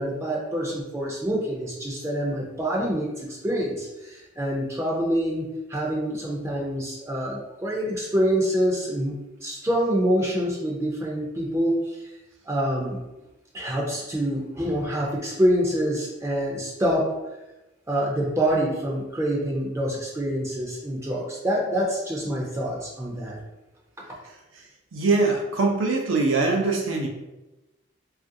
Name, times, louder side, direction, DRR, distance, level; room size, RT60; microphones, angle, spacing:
voice 1, 0.0-12.0 12.5-13.0 13.5-17.1 17.9-23.4, equal, 15° right, -3 dB, 0.4 m, -26 dB
voice 2, 24.9-27.1, right 3 dB, 85° right, 1 dB, 0.6 m, -22 dB
3.1 x 2.4 x 2.6 m, 1.0 s
head